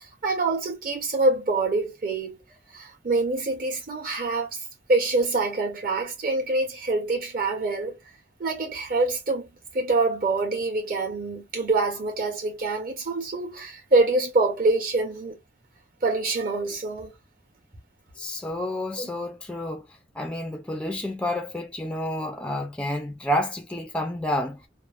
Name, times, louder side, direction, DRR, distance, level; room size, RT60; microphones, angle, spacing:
voice 1, 0.0-2.4 2.7-8.0 8.4-15.4 16.0-17.1 19.0-19.1, right 3 dB, 55° right, 1.5 m, -25 dB
voice 2, 18.2-19.9 20.2-24.6, left 1 dB, 5° left, 0.4 m, -29 dB
3.2 x 2.0 x 2.5 m
head